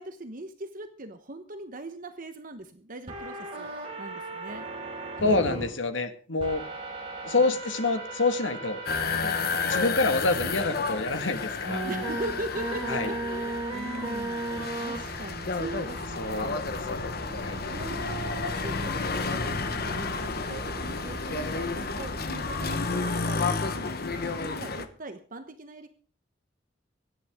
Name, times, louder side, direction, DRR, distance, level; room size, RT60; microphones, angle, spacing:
voice 1, 0.0-3.7 4.0-4.7 7.3-7.4 9.2-9.5 11.8-14.4 14.8-16.6 17.7-23.9 24.4-25.9, right 2 dB, 45° right, 7 dB, 1.2 m, -40 dB
sound 1, 3.1-5.6 6.4-9.8 10.4-10.5 11.6-22.9, right 2 dB, 30° right, 5.6 m, -37 dB
voice 2, 5.2-6.6 7.2-8.8 9.6-11.8 12.9-13.1 16.2-17.1 17.4-17.6, left 3 dB, 85° left, 7 dB, 1.9 m, -27 dB
sound 2, 8.9-24.9, left 4 dB, 55° left, 1.2 m, -31 dB
24.0 x 9.9 x 3.7 m, 0.42 s
head